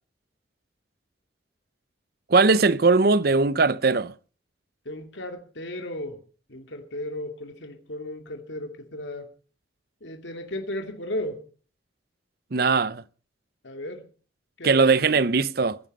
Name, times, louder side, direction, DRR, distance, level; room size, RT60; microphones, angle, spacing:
voice 1, 2.3-4.1 12.5-13.0 14.6-15.8, right 4 dB, 55° right, 0.7 m, -20 dB
voice 2, 4.9-6.2 6.5-9.3 10.0-11.4 13.6-14.0 14.6-14.9, left 1 dB, 85° left, 2.5 m, -35 dB
22.0 x 10.5 x 5.4 m
head